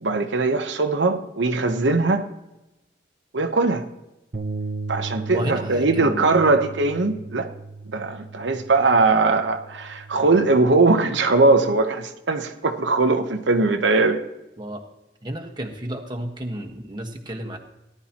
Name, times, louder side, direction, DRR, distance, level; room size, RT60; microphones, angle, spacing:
voice 1, 0.0-2.3 3.3-3.9 4.9-7.5 7.9-14.2, right 3 dB, 85° right, 1.0 m, -20 dB
Bass guitar, 4.3-10.6, right 3 dB, 50° right, 0.9 m, -36 dB
voice 2, 5.3-6.3 14.6-14.8 15.2-17.6, right 1 dB, 25° right, 1.4 m, -32 dB
18.0 x 11.0 x 3.0 m
head